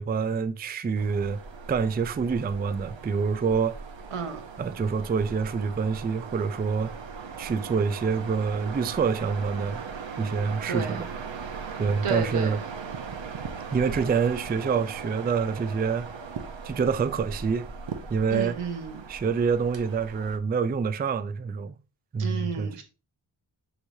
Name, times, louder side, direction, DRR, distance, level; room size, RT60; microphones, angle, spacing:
voice 1, 0.0-1.4 1.7-3.8 4.6-6.9 7.4-9.8 10.2-11.1 11.8-12.6 13.7-16.1 16.6-17.7 18.1-18.6 19.1-21.7 22.1-22.7, right 5 dB, 20° right, 0.3 m, -26 dB
sound 1, 1.0-20.4, right 5 dB, 65° right, 0.8 m, -39 dB
voice 2, 4.1-4.4 10.7-11.0 12.0-12.6 18.3-19.0 22.2-22.8, right 5 dB, 85° right, 1.0 m, -32 dB
6.4 x 3.0 x 2.7 m
cardioid pair, 45°, 50 cm